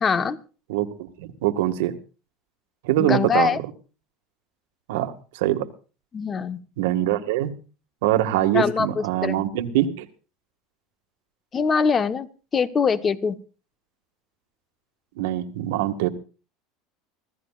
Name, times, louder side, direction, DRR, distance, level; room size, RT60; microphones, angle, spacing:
voice 1, 0.0-0.4 3.0-3.6 6.1-6.6 8.5-9.4 11.5-12.3 12.5-13.3, left 5 dB, 25° left, 13 dB, 1.2 m, -23 dB
voice 2, 1.2-2.0 2.8-3.6 4.9-5.7 6.8-7.5 8.0-10.1 15.2-16.1, right 13 dB, 80° right, 8 dB, 1.9 m, -23 dB
25.5 x 16.0 x 2.5 m, 0.36 s
supercardioid pair, 145°, 0 cm